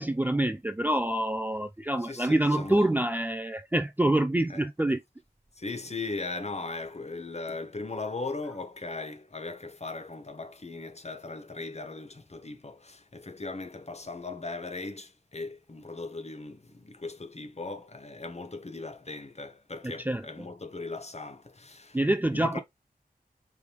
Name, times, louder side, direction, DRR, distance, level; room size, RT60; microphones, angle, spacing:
voice 1, 0.0-5.0 19.8-20.5 21.9-22.6, right 1 dB, 10° right, 0.4 m, -26 dB
voice 2, 2.0-2.8 4.5-4.6 5.6-22.0 22.3-22.6, left 3 dB, 40° left, 1.0 m, -38 dB
4.9 x 3.4 x 2.9 m
wide cardioid pair, 45°, 16 cm